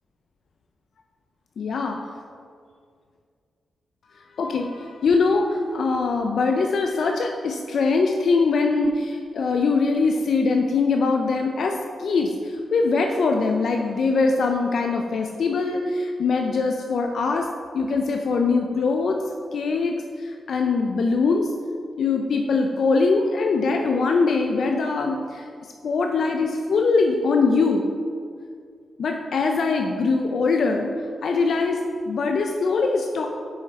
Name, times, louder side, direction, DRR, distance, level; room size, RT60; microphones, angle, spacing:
voice 1, 1.6-2.0 4.4-11.7 12.0-12.3 12.7-17.4 17.7-19.2 19.5-20.0 20.5-21.5 22.0-25.4 25.8-27.8 29.0-30.9 31.2-31.8 32.0-33.3, left 4 dB, 75° left, 3 dB, 0.4 m, -22 dB
6.6 x 5.8 x 4.0 m, 2.2 s
cardioid pair, 80°, 0 cm